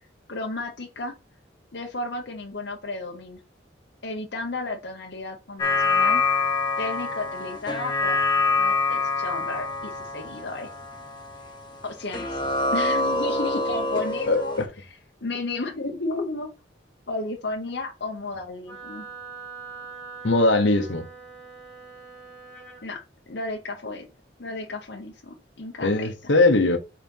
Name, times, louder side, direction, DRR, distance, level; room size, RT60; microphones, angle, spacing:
voice 1, 0.3-1.1 1.7-3.4 4.0-6.2 6.8-10.7 11.8-12.4 12.7-14.5 14.8-16.5 17.1-19.0 22.8-24.1 24.4-26.3, left 2 dB, 65° left, 1.0 m, -33 dB
sound 1, 5.6-11.8 12.1-14.6, left 3 dB, 25° left, 1.3 m, -25 dB
voice 2, 14.3-14.7 20.2-21.1 25.8-26.8, left 2 dB, 85° left, 1.2 m, -20 dB
Wind instrument woodwind instrument, 18.7-22.8, right 4 dB, 10° left, 2.0 m, -42 dB
4.6 x 4.3 x 5.4 m
head